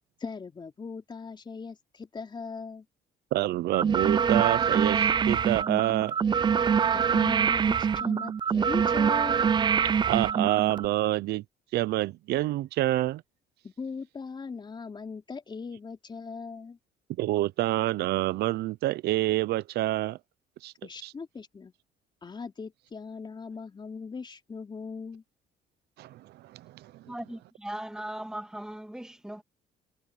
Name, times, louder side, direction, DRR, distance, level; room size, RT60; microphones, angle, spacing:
voice 1, 0.2-2.9 6.9-9.5 13.6-16.8 20.8-21.7 22.2-25.2, left 5 dB, 25° left, 3.8 m, -39 dB
voice 2, 3.3-6.2 10.1-11.4 11.7-13.2 17.2-20.2 20.6-20.7 21.0-21.1 26.0-27.1, right 16 dB, 75° right, 0.7 m, -27 dB
sound 1, 3.7-10.9, right 7 dB, 25° right, 0.4 m, -24 dB
voice 3, 27.1-29.4, right 1 dB, 5° right, 1.9 m, -38 dB
cardioid pair, 110°, 17 cm